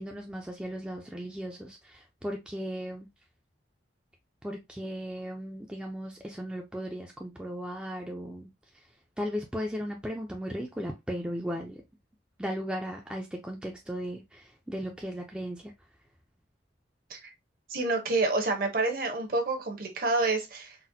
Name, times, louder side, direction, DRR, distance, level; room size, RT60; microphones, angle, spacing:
voice 1, 0.0-3.1 4.4-8.5 9.2-11.8 12.4-15.7, equal, 5° right, 0.3 m, -36 dB
voice 2, 17.7-20.8, right 3 dB, 50° right, 0.8 m, -28 dB
4.0 x 2.1 x 2.6 m
head